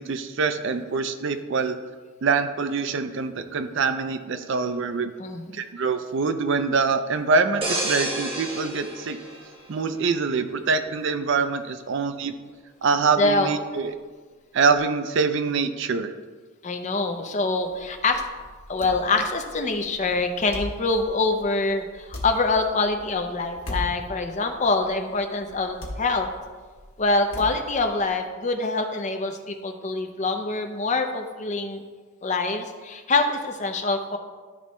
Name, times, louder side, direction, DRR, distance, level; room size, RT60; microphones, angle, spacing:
voice 1, 0.0-1.8 2.2-5.1 5.5-9.2 9.7-12.3 12.8-14.0 14.5-16.1, right 4 dB, 55° right, 9 dB, 0.4 m, -24 dB
voice 2, 5.2-5.5 13.2-13.5 16.6-18.2 18.7-26.3 27.0-31.8 32.2-34.2, left 3 dB, 35° left, 5 dB, 0.5 m, -25 dB
sound 1, 7.6-10.3 10.7-11.0, right 1 dB, 25° right, 1.0 m, -31 dB
sound 2, 17.6-28.1, left 1 dB, 60° left, 1.6 m, -39 dB
12.0 x 4.1 x 3.1 m, 1.4 s
head